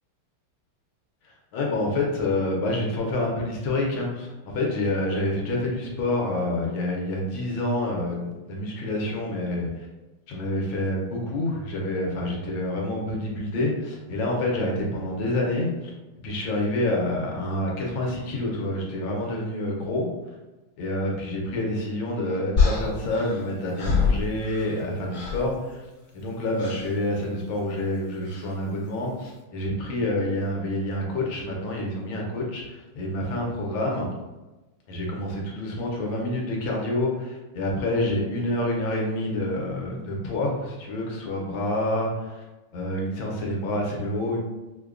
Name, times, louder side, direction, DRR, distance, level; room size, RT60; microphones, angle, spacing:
voice 1, 1.5-9.9 10.3-15.9 16.2-20.1 20.8-25.8 26.1-34.1 34.9-42.4 42.7-44.4, left 1 dB, 75° left, -1 dB, 1.4 m, -27 dB
sound 1, 22.6-24.8 25.1-25.5 26.6-26.9 28.2-28.5, left 5 dB, 45° left, 1.5 m, -25 dB
5.1 x 2.2 x 2.4 m, 1.1 s
omnidirectional pair, 2.4 m